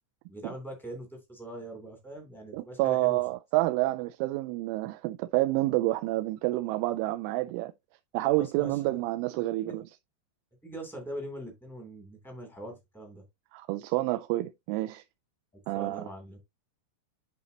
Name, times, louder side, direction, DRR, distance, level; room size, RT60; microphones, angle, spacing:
voice 1, 0.3-3.2 8.4-8.9 9.6-9.8 10.6-13.2 15.7-16.4, right 1 dB, ahead, 1.3 m, -42 dB
voice 2, 2.5-7.7 8.1-9.8 13.5-15.0 15.7-16.0, right 18 dB, 85° right, 2.9 m, -28 dB
11.0 x 4.4 x 2.9 m
omnidirectional pair, 5.6 m